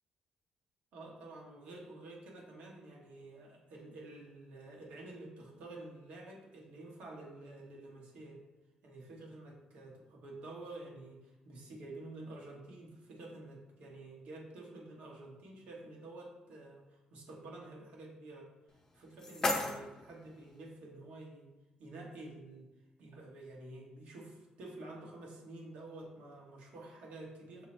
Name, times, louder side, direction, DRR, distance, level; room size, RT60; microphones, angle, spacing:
voice 1, 0.9-8.4 8.8-18.5 18.9-21.5 21.8-22.7 23.0-27.7, right 2 dB, 75° right, -1 dB, 1.1 m, -49 dB
sound 1, 18.7-20.7, left 2 dB, 25° left, 0.6 m, -37 dB
5.7 x 2.0 x 4.2 m, 1.0 s
cardioid pair, 115°, 2 cm